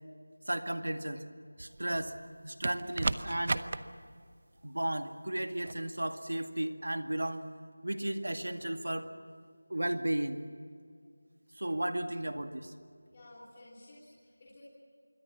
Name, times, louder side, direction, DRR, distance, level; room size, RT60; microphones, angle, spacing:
voice 1, 0.5-1.2 1.6-2.2 2.4-3.7 4.6-7.4 7.8-9.1 9.7-10.4 11.5-12.7, right 1 dB, 85° right, 7 dB, 2.2 m, -34 dB
sound 1, 1.6-2.2 2.6-3.8 5.6-5.8, right 3 dB, 35° right, 0.8 m, -34 dB
voice 2, 13.1-14.6, left 1 dB, 25° left, -5 dB, 3.3 m, -54 dB
26.5 x 23.0 x 7.3 m, 2.2 s
figure-of-eight pair, 175°, 0 cm